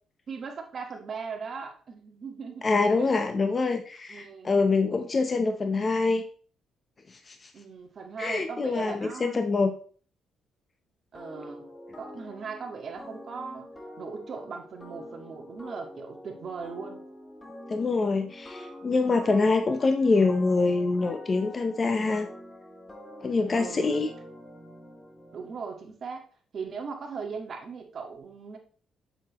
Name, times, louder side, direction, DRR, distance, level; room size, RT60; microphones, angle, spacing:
voice 1, 0.3-2.7 3.0-3.1 4.1-4.5 7.5-9.4 11.1-11.7 11.9-13.7 14.0-17.0 23.5-23.9 25.3-26.2 26.5-28.6, right 5 dB, 50° right, 3 dB, 1.7 m, -38 dB
voice 2, 2.6-6.2 7.3-7.4 8.2-9.7 17.7-22.3 23.2-24.1, left 3 dB, 35° left, 7 dB, 0.7 m, -25 dB
sound 1, 11.1-25.8, left 1 dB, 15° left, 1.7 m, -46 dB
7.5 x 6.6 x 3.0 m, 0.43 s
cardioid pair, 90°, 0 cm